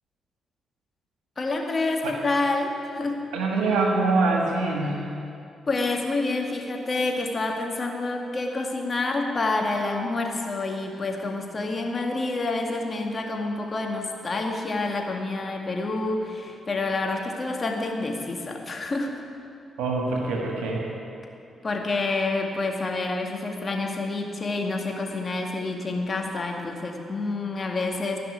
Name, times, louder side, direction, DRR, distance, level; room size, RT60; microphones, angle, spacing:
voice 1, 1.4-3.2 5.7-19.2 21.6-28.2, left 3 dB, 40° left, 1 dB, 2.1 m, -28 dB
voice 2, 3.3-5.1 19.8-20.9, right 3 dB, 80° right, 0 dB, 1.7 m, -24 dB
15.0 x 5.9 x 9.4 m, 2.5 s
hypercardioid pair, 45°, 0 cm